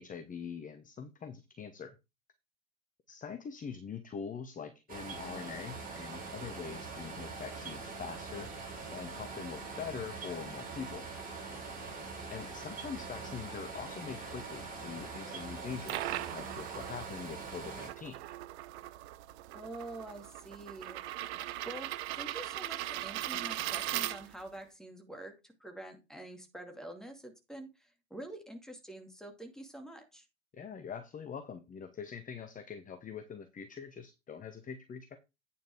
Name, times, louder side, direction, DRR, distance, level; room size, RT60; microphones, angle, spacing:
voice 1, 0.0-2.0 3.1-8.5 8.9-11.1 12.3-18.2 30.5-35.2, left 6 dB, 20° left, 10 dB, 1.0 m, -43 dB
sound 1, 4.9-17.9, right 4 dB, 20° right, 5.1 m, -43 dB
sound 2, 5.1-16.3, left 4 dB, 75° left, 2.0 m, -55 dB
sound 3, 15.6-24.6, right 15 dB, 55° right, 0.7 m, -39 dB
voice 2, 19.5-21.0 21.7-21.9 22.2-30.2, right 1 dB, ahead, 5 dB, 2.4 m, -46 dB
9.1 x 5.6 x 4.7 m, 0.25 s
figure-of-eight pair, 80°, 39 cm